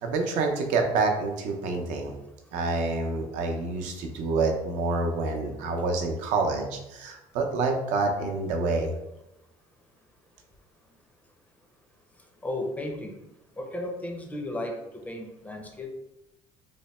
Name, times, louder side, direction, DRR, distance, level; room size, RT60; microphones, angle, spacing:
voice 1, 0.0-2.1 2.5-8.9, right 3 dB, 75° right, 3 dB, 0.6 m, -27 dB
voice 2, 12.4-13.2 13.6-14.7 15.1-15.9, left 1 dB, 10° left, 2 dB, 0.5 m, -34 dB
3.2 x 2.1 x 4.0 m, 0.92 s
cardioid pair, 140°, 13 cm